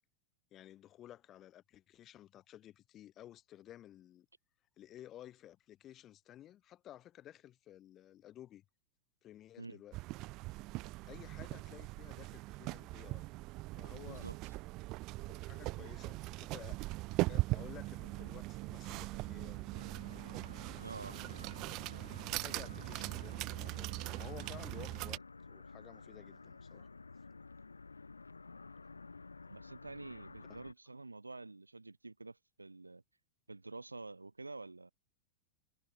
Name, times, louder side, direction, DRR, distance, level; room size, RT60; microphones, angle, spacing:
voice 1, 0.5-4.3 4.8-8.6 9.2-10.0 11.1-13.3 13.8-14.3 15.2-16.8 17.2-19.8 22.4-25.2 25.5-26.9 30.4-30.6, left 12 dB, 30° left, 3.9 m, -54 dB
sound 1, 9.9-25.2, right 21 dB, 40° right, 0.4 m, -40 dB
voice 2, 14.0-14.5 20.8-21.2 29.5-33.0 33.5-34.9, right 3 dB, 80° right, 0.7 m, -48 dB
sound 2, 19.7-30.7, left 4 dB, 80° left, 1.9 m, -53 dB
figure-of-eight pair, 90°, 0 cm